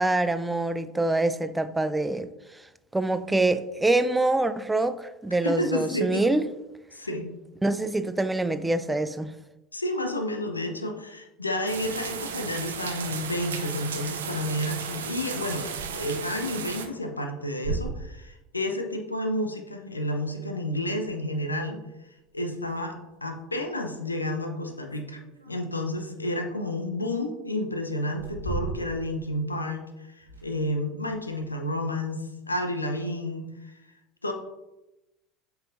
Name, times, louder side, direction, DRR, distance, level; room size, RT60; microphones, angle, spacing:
voice 1, 0.0-6.5 7.6-9.3, right 2 dB, 10° right, 12 dB, 0.4 m, -25 dB
voice 2, 5.4-6.2 6.9-7.3 9.7-15.7 15.9-21.8 22.3-23.0 23.2-25.2 25.5-33.7 34.2-34.3, left 1 dB, 85° left, 4 dB, 0.8 m, -30 dB
sound 1, 11.7-16.9, right 7 dB, 70° right, 0.6 m, -35 dB
sound 2, 15.6-16.0 16.4-16.5 17.6-18.3 21.0-21.1 22.2-22.3 22.6-22.8 23.4-23.5 24.6-26.0 27.0-27.1 28.0-29.2 29.5-29.6 30.2-30.7 31.1-31.5, right 3 dB, 90° right, 1.3 m, -36 dB
8.1 x 5.6 x 2.6 m, 0.97 s
figure-of-eight pair, 70°, 0 cm